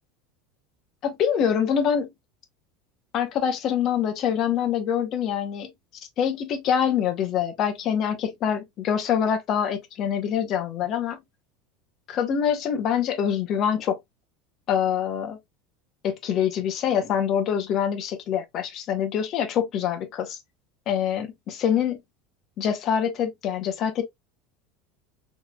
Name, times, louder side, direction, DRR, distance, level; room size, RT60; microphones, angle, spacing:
voice 1, 1.0-2.1 3.1-5.7 6.2-11.2 12.1-14.0 14.7-15.4 16.0-20.4 20.9-22.0 22.6-24.0, left 8 dB, 35° left, 0.8 m, -25 dB
4.0 x 3.1 x 2.2 m
supercardioid pair, 155°, 0 cm